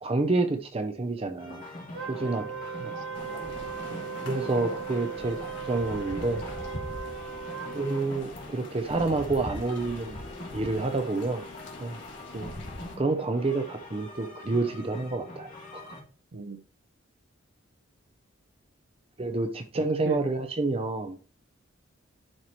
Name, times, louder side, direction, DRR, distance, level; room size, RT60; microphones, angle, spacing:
voice 1, 0.0-1.6 2.1-2.5 4.2-6.4 7.7-10.2 10.5-11.4 11.8-12.0 12.3-12.5 13.0-16.0 19.2-21.2, right 3 dB, 30° right, 0.5 m, -28 dB
sound 1, 1.4-16.0, left 2 dB, 40° left, 2.7 m, -44 dB
Wind instrument woodwind instrument, 1.9-8.2, right 7 dB, 85° right, 1.0 m, -38 dB
voice 2, 2.8-3.6 3.9-4.2 16.3-16.6 19.8-20.2, right 4 dB, 70° right, 0.6 m, -39 dB
sound 2, 3.1-13.0, left 1 dB, 60° left, 2.1 m, -42 dB
11.0 x 4.6 x 3.0 m
head